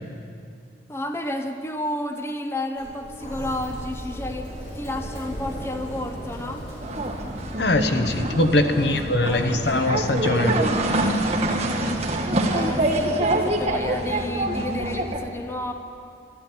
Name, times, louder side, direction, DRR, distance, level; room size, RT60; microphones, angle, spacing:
voice 1, 0.9-6.7 8.8-10.1 12.5-15.7, left 1 dB, 15° left, 5 dB, 0.7 m, -32 dB
Sliding door, 2.8-7.8, equal, 40° left, 4.0 m, -36 dB
sound 1, 6.8-15.2, right 1 dB, 35° right, 1.5 m, -25 dB
voice 2, 7.6-10.6, left 2 dB, 65° left, 7 dB, 0.9 m, -22 dB
12.5 x 12.5 x 7.7 m, 2.4 s
head